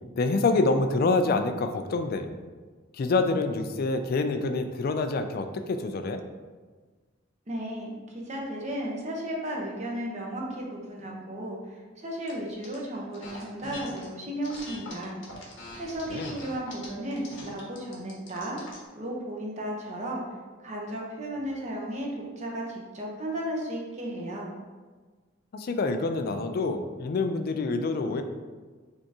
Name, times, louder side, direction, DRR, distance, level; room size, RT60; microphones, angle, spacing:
voice 1, 0.2-2.3 2.9-6.2 16.1-16.4 25.5-28.2, left 3 dB, 55° left, 7 dB, 0.4 m, -26 dB
voice 2, 7.5-15.1 15.8-18.6 19.0-20.2 20.6-22.1 22.4-24.5, right 1 dB, 40° right, -2 dB, 0.9 m, -34 dB
sound 1, 12.3-12.8 13.1-14.1 14.4-18.8, left 2 dB, 90° left, 1.2 m, -43 dB
5.2 x 3.5 x 2.9 m, 1.4 s
head